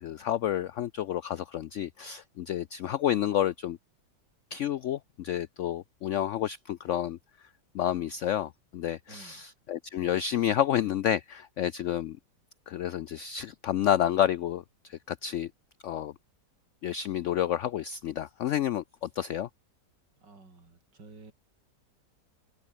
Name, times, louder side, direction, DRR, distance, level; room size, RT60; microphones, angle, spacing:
voice 1, 0.0-3.8 4.5-7.2 7.7-12.2 12.7-15.5 15.8-16.1 16.8-19.5, left 11 dB, 85° left, 0.6 m, -30 dB
voice 2, 9.1-9.4 20.2-21.3, right 3 dB, 85° right, 4.9 m, -51 dB
omnidirectional pair, 1.8 m